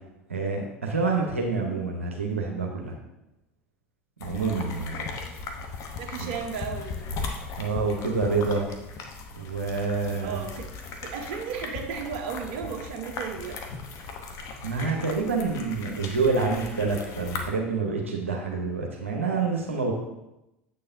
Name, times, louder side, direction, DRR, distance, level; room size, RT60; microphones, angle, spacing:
voice 1, 0.3-2.9 4.2-5.1 6.2-6.3 7.6-8.7 9.4-10.4 14.6-19.9, right 4 dB, 90° right, 0 dB, 0.9 m, -27 dB
sound 1, 4.2-17.5, left 4 dB, 50° left, 1.0 m, -38 dB
voice 2, 6.0-7.0 10.2-10.7 11.0-13.6, right 6 dB, 60° right, 3 dB, 1.0 m, -34 dB
7.9 x 6.7 x 2.7 m, 0.90 s
figure-of-eight pair, 75°, 7 cm